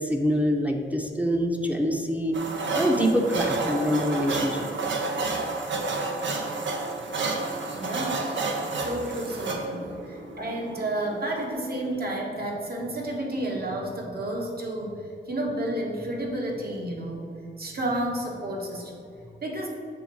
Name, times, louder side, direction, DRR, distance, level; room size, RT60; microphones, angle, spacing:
voice 1, 0.0-2.4 2.7-4.7, equal, 5° right, 2 dB, 0.7 m, -25 dB
sound 1, 2.3-11.5, right 3 dB, 80° right, 0.8 m, -30 dB
voice 2, 7.7-8.2 8.8-17.3 17.6-19.7, right 1 dB, 55° right, -1 dB, 1.4 m, -31 dB
6.9 x 3.7 x 6.2 m, 2.4 s
wide cardioid pair, 85°, 19 cm